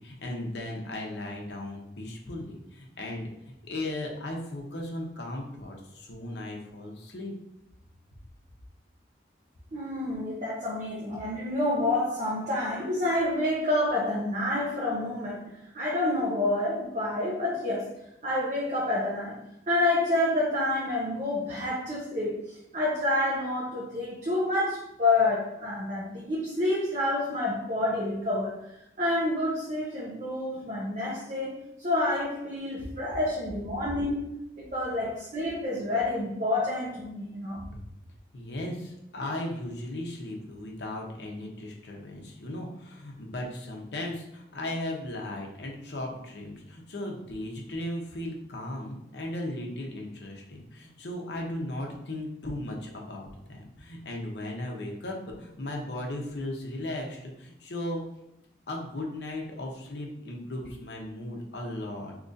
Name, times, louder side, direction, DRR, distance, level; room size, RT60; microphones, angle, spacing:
voice 1, 0.0-7.3 32.8-32.9 38.3-58.0 58.7-62.1, left 1 dB, 75° left, 0 dB, 0.7 m, -36 dB
voice 2, 9.7-17.9 18.2-19.4 19.7-28.6 29.0-37.6, left 2 dB, 40° right, -6 dB, 0.7 m, -28 dB
2.9 x 2.5 x 3.9 m, 0.85 s
head